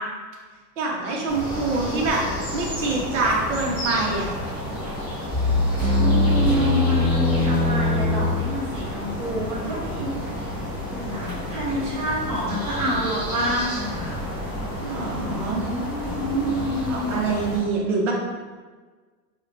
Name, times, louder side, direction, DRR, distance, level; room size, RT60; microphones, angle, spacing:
voice 1, 0.8-2.2 2.5-4.3 14.8-15.6 16.3-16.5 16.9-18.1, right 3 dB, 50° right, -2 dB, 0.7 m, -25 dB
sound 1, 1.3-17.6, equal, 5° left, 0.5 m, -31 dB
sound 2, 5.3-8.5, left 2 dB, 10° right, 1.1 m, -21 dB
voice 2, 6.0-10.1 10.9-14.2 15.6-17.2, equal, 30° right, -8 dB, 1.3 m, -27 dB
3.6 x 2.2 x 2.4 m, 1.4 s
supercardioid pair, 170°, 49 cm